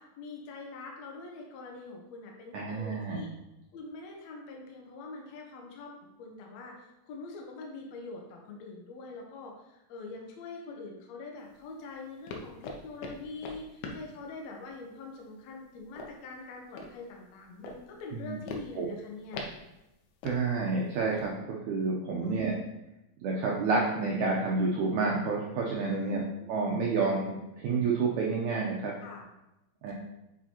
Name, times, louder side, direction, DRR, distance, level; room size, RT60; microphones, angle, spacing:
voice 1, 0.0-3.3 3.7-5.9 6.2-19.4 22.2-22.6 25.8-26.3 29.0-29.2 29.9-30.0, left 3 dB, 70° left, 0 dB, 1.7 m, -44 dB
voice 2, 2.5-3.2 18.1-18.4 18.8-18.9 20.2-22.5 23.2-26.2 26.5-27.3 27.6-28.9 29.8-29.9, right 4 dB, 75° right, -3 dB, 1.8 m, -29 dB
sound 1, 11.4-21.3, left 3 dB, 85° left, 2.7 m, -44 dB
7.4 x 4.9 x 2.9 m, 0.92 s
omnidirectional pair, 4.2 m